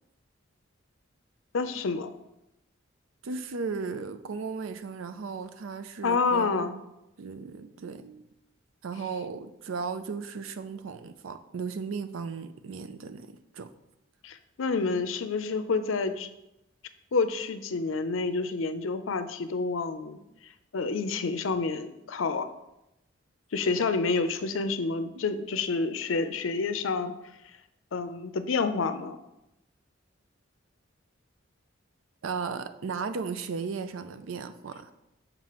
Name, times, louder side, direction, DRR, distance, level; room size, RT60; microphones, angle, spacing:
voice 1, 1.5-2.1 6.0-6.7 14.2-16.3 17.1-20.2 20.7-22.5 23.5-27.1 27.9-29.2, left 4 dB, 80° left, 0.5 m, -28 dB
voice 2, 3.2-6.8 7.2-8.3 8.8-13.7 25.1-25.2 32.2-34.9, right 5 dB, 85° right, 0.5 m, -36 dB
7.4 x 5.1 x 3.0 m
head